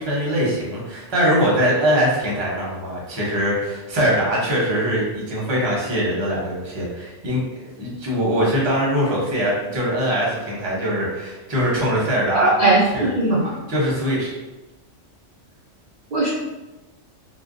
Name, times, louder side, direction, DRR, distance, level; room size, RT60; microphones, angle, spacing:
voice 1, 0.0-12.5 12.9-13.1 13.7-14.3, equal, 30° right, -5 dB, 0.6 m, -22 dB
voice 2, 12.3-13.5 16.1-16.3, right 2 dB, 70° right, -6 dB, 0.4 m, -18 dB
2.5 x 2.1 x 2.5 m, 1.1 s
omnidirectional pair, 1.2 m